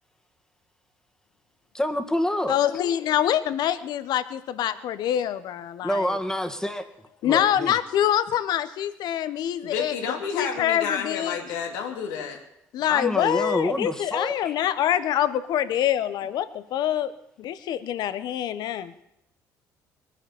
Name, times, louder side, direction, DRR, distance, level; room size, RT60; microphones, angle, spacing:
voice 1, 1.7-2.6 5.8-6.9 7.2-7.8 12.8-14.6, left 1 dB, 10° left, 8 dB, 1.8 m, -27 dB
voice 2, 2.5-6.0 7.2-9.9 10.3-11.4 12.7-17.1 17.4-18.9, left 11 dB, 65° left, 14 dB, 1.0 m, -25 dB
voice 3, 9.6-12.4, left 6 dB, 85° left, 3 dB, 2.6 m, -30 dB
20.0 x 9.8 x 7.2 m, 0.82 s
supercardioid pair, 70°, 7 cm